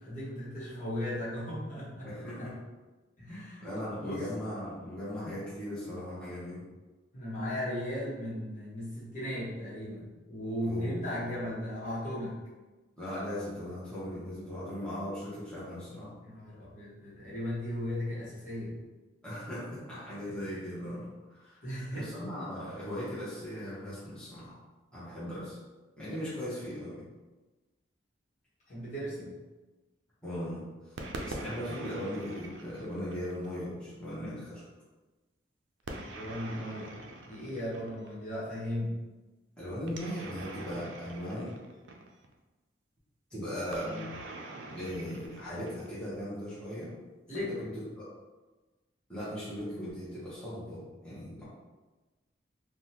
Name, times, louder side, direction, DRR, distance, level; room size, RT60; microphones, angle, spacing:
voice 1, 0.0-2.5 3.2-3.6 4.0-4.3 7.1-12.4 16.2-18.8 20.3-20.4 21.6-22.1 28.7-29.3 35.9-39.0 47.3-47.7, left 1 dB, 40° left, -9 dB, 1.1 m, -37 dB
voice 2, 2.0-2.5 3.3-6.6 10.6-11.4 13.0-16.1 19.2-21.7 21.9-24.6 24.9-25.6 26.0-27.0 30.2-34.6 39.6-41.6 43.3-44.2 44.7-46.9 47.3-47.7 48.0-48.1 49.1-51.4, equal, 5° left, -12 dB, 0.8 m, -38 dB
sound 1, 31.0-33.6 35.9-38.2 39.9-42.3 43.7-46.2, right 2 dB, 75° right, 0.4 m, -44 dB
3.4 x 2.1 x 2.8 m, 1.2 s
head